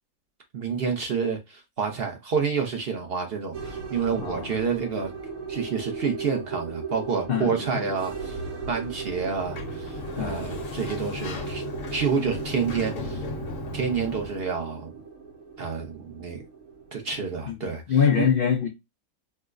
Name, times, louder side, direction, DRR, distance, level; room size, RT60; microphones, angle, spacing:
voice 1, 0.5-5.1 5.5-8.4 8.7-11.6 11.9-13.2 13.7-14.9 15.6-16.5 16.9-17.8 18.2-18.3, right 5 dB, 55° right, 0.7 m, -28 dB
sound 1, 3.5-17.1, right 5 dB, 80° right, 1.3 m, -37 dB
voice 2, 4.2-4.6 7.3-7.8 10.2-10.5 17.5-18.7, left 7 dB, 85° left, 0.4 m, -24 dB
Sliding door, 9.2-14.5, left 3 dB, 70° left, 1.0 m, -36 dB
4.5 x 2.0 x 2.4 m
omnidirectional pair, 1.5 m